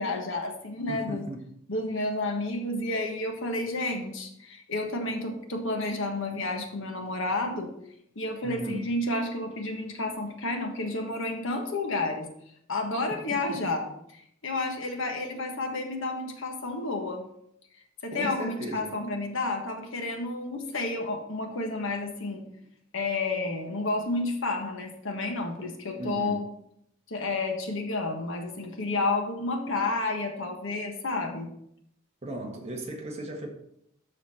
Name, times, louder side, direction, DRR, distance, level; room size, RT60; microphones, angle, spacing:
voice 1, 0.0-1.2 1.7-7.7 8.1-12.3 12.7-13.9 14.1-17.2 18.0-22.4 22.9-26.4 27.1-31.5, left 2 dB, 65° left, 3 dB, 1.5 m, -31 dB
voice 2, 0.9-1.4 8.4-8.9 13.5-13.6 18.1-18.9 26.0-26.5 32.2-33.5, right 1 dB, 30° right, 1 dB, 1.6 m, -36 dB
13.0 x 4.3 x 4.3 m, 0.73 s
head